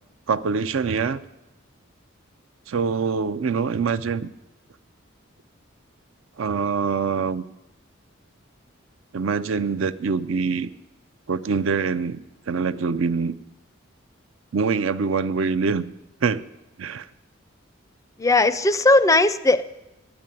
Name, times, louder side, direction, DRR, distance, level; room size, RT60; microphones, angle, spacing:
voice 1, 0.3-1.2 2.7-4.3 6.4-7.4 9.1-10.7 11.3-12.2 12.5-13.3 14.5-15.9 16.2-16.4 16.8-17.1, right 5 dB, 75° right, 13 dB, 0.5 m, -24 dB
voice 2, 18.2-19.6, left 2 dB, 15° left, 14 dB, 0.4 m, -17 dB
11.0 x 8.4 x 8.9 m, 0.96 s
head